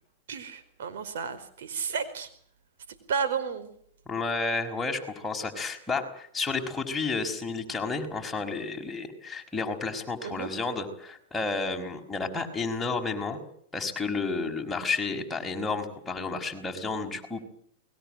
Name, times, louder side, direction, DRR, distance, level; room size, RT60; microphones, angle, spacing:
voice 1, 0.3-2.3 3.1-3.7 10.2-10.5, right 6 dB, 75° right, 10 dB, 4.8 m, -32 dB
voice 2, 4.1-13.4 13.7-17.4, left 4 dB, 10° left, 1 dB, 5.3 m, -31 dB
29.0 x 21.0 x 7.8 m, 0.64 s
hypercardioid pair, 120°, 0 cm